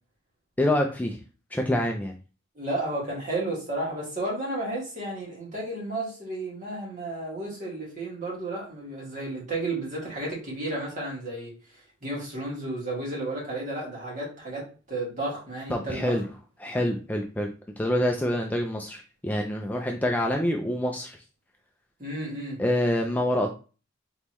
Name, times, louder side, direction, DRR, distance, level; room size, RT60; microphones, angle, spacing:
voice 1, 0.6-1.2 1.5-2.1 15.7-16.2 16.6-17.5 17.8-21.2 22.6-23.5, left 1 dB, 10° left, 2 dB, 0.3 m, -26 dB
voice 2, 2.6-11.5 12.0-16.2 22.0-22.6, right 2 dB, 40° right, -4 dB, 2.0 m, -32 dB
4.0 x 3.6 x 3.0 m, 0.35 s
head